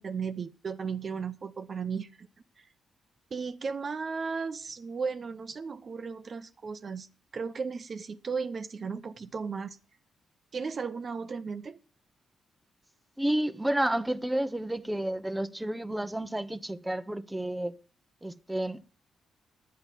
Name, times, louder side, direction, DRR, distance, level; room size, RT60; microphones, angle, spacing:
voice 1, 0.0-2.3 2.6-2.7 3.3-7.1 7.3-9.8 10.5-11.8, right 5 dB, 45° right, 0.8 m, -35 dB
voice 2, 13.2-17.7 18.2-18.9, right 1 dB, 10° right, 0.9 m, -30 dB
10.5 x 9.7 x 7.3 m
cardioid pair, 85°, 0 cm